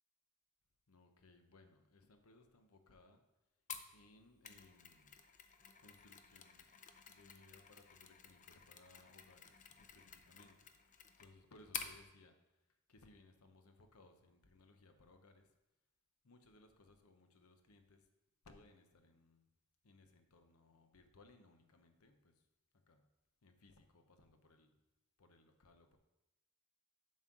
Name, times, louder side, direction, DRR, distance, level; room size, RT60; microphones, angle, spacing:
voice 1, 0.9-3.2 3.9-5.2 5.8-6.7 7.0-10.7 11.2-15.5 16.2-18.1 18.4-19.5 19.8-22.5 22.7-23.1 23.4-24.9 25.2-26.0, left 2 dB, 75° left, 6 dB, 0.9 m, -65 dB
Mechanisms, 3.7-12.0, left 7 dB, 35° left, 0.5 m, -52 dB
7.4 x 4.2 x 6.1 m, 0.95 s
head